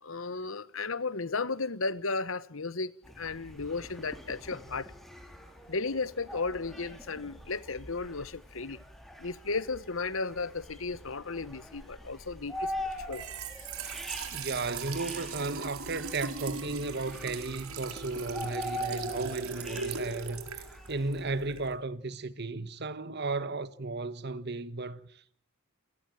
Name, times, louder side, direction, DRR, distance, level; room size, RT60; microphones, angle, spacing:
voice 1, 0.0-4.9 5.7-8.8 9.2-12.7 13.0-13.2 13.6-13.7, left 3 dB, 65° left, 1.2 m, -34 dB
sound 1, 3.0-21.4, equal, ahead, 3.7 m, -43 dB
Trickle dribble / Fill (with liquid), 13.0-21.8, right 5 dB, 80° right, 4.3 m, -39 dB
voice 2, 14.3-25.3, right 3 dB, 50° right, 1.2 m, -35 dB
28.5 x 18.5 x 9.0 m
head